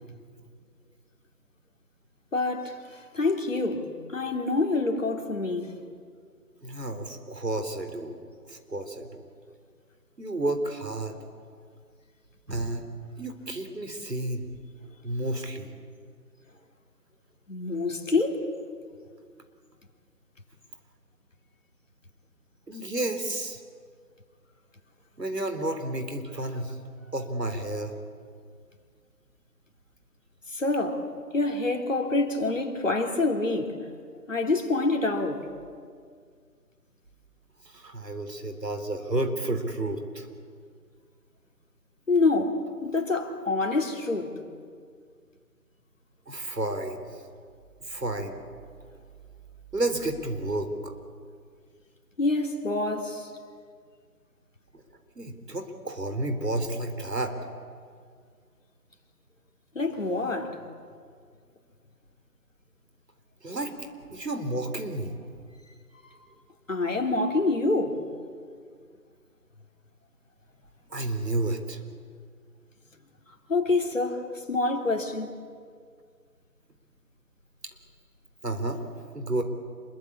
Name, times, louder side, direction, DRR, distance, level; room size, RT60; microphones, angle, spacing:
voice 1, 2.3-5.7 17.5-18.5 30.5-31.1 31.3-33.8 34.3-35.5 42.1-44.3 52.2-53.3 59.7-60.6 66.0-66.1 66.7-68.0 73.5-75.3, left 3 dB, 50° left, 3.4 m, -26 dB
voice 2, 6.6-8.1 8.5-9.1 10.2-11.2 12.5-12.9 13.2-14.5 15.0-15.7 22.7-23.6 25.2-26.8 27.1-27.9 37.6-40.3 46.3-47.1 47.8-48.4 49.7-50.9 54.7-54.8 55.2-57.4 63.4-65.2 70.9-71.8 78.4-78.8 79.1-79.4, right 2 dB, 85° right, 3.8 m, -31 dB
27.5 x 22.5 x 8.6 m
figure-of-eight pair, 170°, 48 cm